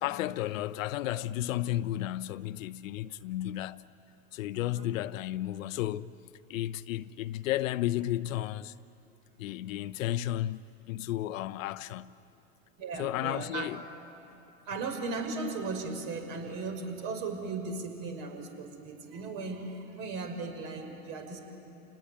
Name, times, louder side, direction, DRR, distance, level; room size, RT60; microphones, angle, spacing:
voice 1, 0.0-3.8 4.3-6.1 6.5-8.7 9.4-12.1 13.0-13.8, left 14 dB, 65° left, 0.8 m, -33 dB
voice 2, 12.8-13.7 14.7-21.4, right 4 dB, 50° right, 5.7 m, -37 dB
29.5 x 19.5 x 9.4 m
hypercardioid pair, 95°, 43 cm